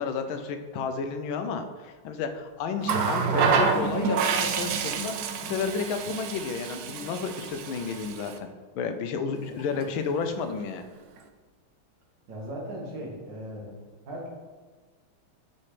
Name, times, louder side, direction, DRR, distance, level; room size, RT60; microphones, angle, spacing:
voice 1, 0.0-8.5 8.8-10.8, left 5 dB, 85° left, 7 dB, 1.4 m, -31 dB
Water tap faucet, 2.8-8.4 9.6-9.8, right 5 dB, 80° right, 0.8 m, -28 dB
voice 2, 12.3-13.8 14.1-14.3, equal, 65° right, -2 dB, 2.0 m, -38 dB
8.5 x 4.3 x 3.3 m, 1.4 s
omnidirectional pair, 2.2 m